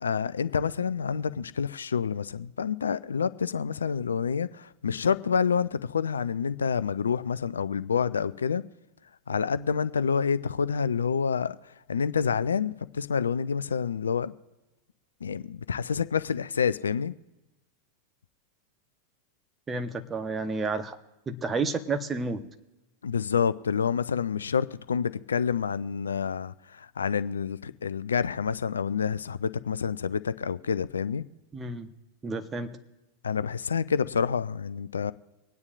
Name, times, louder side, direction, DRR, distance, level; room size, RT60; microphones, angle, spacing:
voice 1, 0.0-8.6 9.3-11.6 11.9-14.3 15.2-17.1 23.0-31.2 33.2-35.1, left 6 dB, 70° left, 0.4 m, -28 dB
voice 2, 19.7-20.9 21.3-22.4 31.5-31.9 32.2-32.7, right 3 dB, 20° right, 1.0 m, -30 dB
24.5 x 9.6 x 2.5 m
figure-of-eight pair, 90°, 0 cm